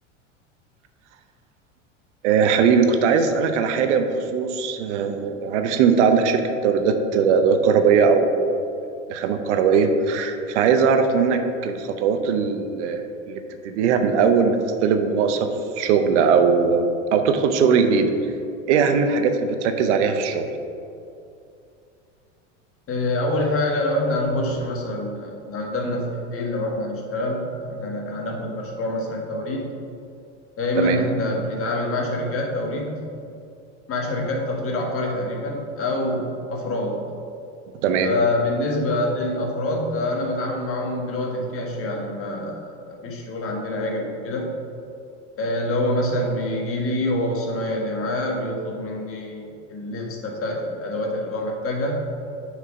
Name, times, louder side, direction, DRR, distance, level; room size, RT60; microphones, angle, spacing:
voice 1, 2.2-8.4 9.1-13.4 13.6-15.5 15.8-18.1 18.7-20.5 30.8-31.0 37.8-38.1, right 5 dB, 70° right, 7 dB, 0.8 m, -20 dB
voice 2, 22.9-29.7 30.6-33.1 33.9-37.1 38.0-44.6 45.4-52.0, left 1 dB, 35° left, 0 dB, 1.6 m, -26 dB
6.6 x 4.9 x 5.0 m, 2.6 s
hypercardioid pair, 95°, 37 cm